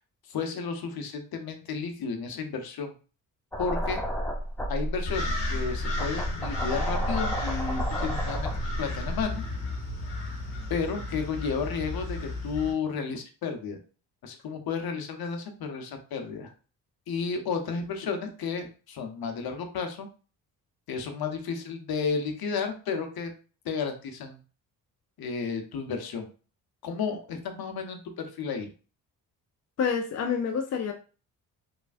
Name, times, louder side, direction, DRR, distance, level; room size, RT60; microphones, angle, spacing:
voice 1, 0.3-2.9 3.6-4.0 4.7-8.5 8.8-9.4 10.7-13.8 14.2-16.5 17.1-20.1 20.9-23.3 23.6-24.4 25.2-26.3 26.8-28.7, left 5 dB, 55° left, 5 dB, 0.8 m, -32 dB
sound 1, 3.5-9.2, equal, 5° left, 0.8 m, -31 dB
sound 2, 5.1-12.7, left 2 dB, 85° left, 1.1 m, -34 dB
voice 2, 29.8-30.9, left 6 dB, 40° left, 5 dB, 0.4 m, -27 dB
3.2 x 2.2 x 2.4 m, 0.36 s
hypercardioid pair, 50°, 44 cm